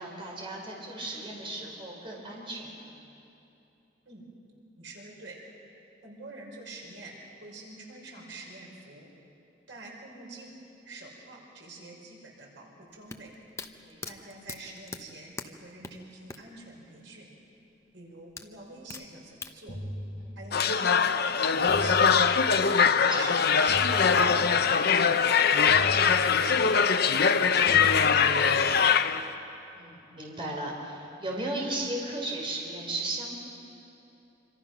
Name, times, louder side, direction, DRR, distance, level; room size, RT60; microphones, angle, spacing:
voice 1, 0.0-2.9 13.8-14.1 20.2-20.4 22.8-23.3 29.8-33.4, right 2 dB, 30° right, -2 dB, 4.3 m, -36 dB
voice 2, 4.8-5.4 6.0-7.1 7.4-9.1 9.7-10.5 10.9-13.3 14.0-17.3 17.9-19.8 20.4-22.3 23.0-23.9 24.2-25.4 25.9-26.9 27.2-29.1, right 2 dB, 90° right, -1 dB, 5.4 m, -46 dB
sound 1, 12.9-16.6 16.9-17.0 18.4-19.6, left 3 dB, 15° left, 0.9 m, -41 dB
sound 2, 19.7-20.9 21.7-22.9 23.7-24.9 25.7-26.9 27.7-28.9, equal, 40° left, 6.1 m, -39 dB
sound 3, 20.5-29.3, left 6 dB, 60° left, 0.8 m, -22 dB
26.5 x 25.5 x 6.0 m, 2.9 s
head